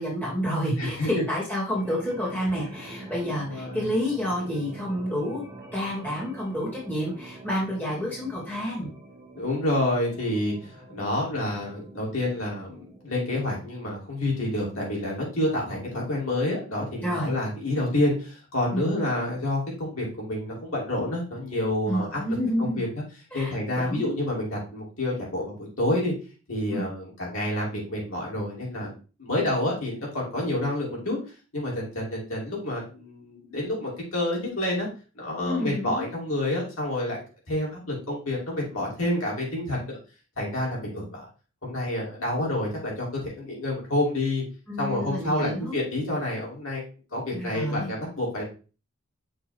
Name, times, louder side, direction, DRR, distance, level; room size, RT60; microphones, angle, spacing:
voice 1, 0.0-5.4 5.7-8.9 17.0-17.3 18.7-18.9 21.9-22.9 23.3-24.1 26.7-26.8 35.4-36.1 44.7-45.8 47.3-47.9, equal, 10° left, -6 dB, 2.4 m, -29 dB
voice 2, 0.8-1.1 2.9-3.9 9.3-22.2 22.6-22.9 23.3-26.1 26.5-28.9 29.2-31.2 31.5-34.9 35.2-40.0 40.4-41.2 41.6-44.4 44.8-46.8 47.1-48.4, left 1 dB, 70° left, -3 dB, 2.8 m, -28 dB
sound 1, 1.7-13.8, right 1 dB, 15° right, 1.0 m, -45 dB
6.4 x 3.5 x 4.5 m, 0.35 s
head